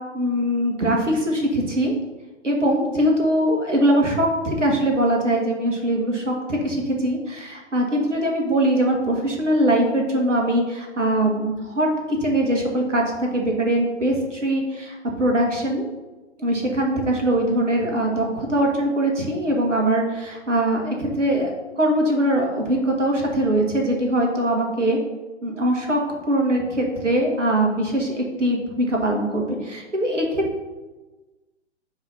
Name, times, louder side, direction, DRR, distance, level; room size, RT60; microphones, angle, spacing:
voice 1, 0.1-1.9 2.4-15.9 16.4-25.0 25.4-26.0 26.3-30.6, right 1 dB, 80° right, 0 dB, 1.7 m, -22 dB
4.8 x 4.1 x 5.7 m, 1.2 s
figure-of-eight pair, 125°, 36 cm